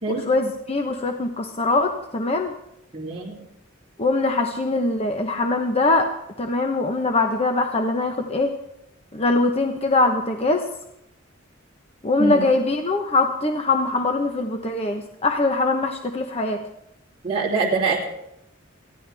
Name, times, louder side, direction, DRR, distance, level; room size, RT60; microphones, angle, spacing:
voice 1, 0.1-2.5 4.0-6.1 6.4-8.5 9.1-10.7 12.0-16.6, left 2 dB, 30° left, 4 dB, 1.0 m, -22 dB
voice 2, 2.9-3.3 12.2-12.4 17.2-18.0, right 4 dB, 30° right, -5 dB, 3.0 m, -24 dB
22.0 x 15.0 x 3.5 m, 0.79 s
head